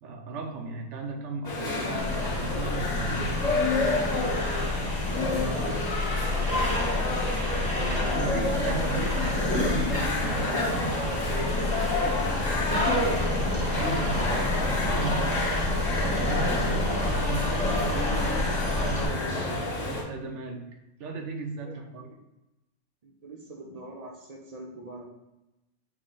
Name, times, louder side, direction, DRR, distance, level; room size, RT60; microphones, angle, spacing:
voice 1, 0.0-3.6 5.2-5.5 7.6-11.7 13.3-15.4 15.7-20.6 21.0-22.1, right 3 dB, 75° right, 3 dB, 1.0 m, -36 dB
sound 1, 1.4-20.0, left 2 dB, 90° left, 1.5 m, -29 dB
sound 2, 2.0-19.1, left 2 dB, 5° left, 0.8 m, -30 dB
voice 2, 5.1-8.5 12.5-14.4 16.3-16.9 21.6-22.1 23.0-25.1, right 1 dB, 40° right, -1 dB, 0.7 m, -42 dB
Cough, 9.2-9.5 9.9-10.2 10.5-10.9 12.7-13.1 13.7-14.5, equal, 50° left, 1.6 m, -34 dB
6.1 x 2.1 x 3.9 m, 0.95 s
omnidirectional pair, 1.3 m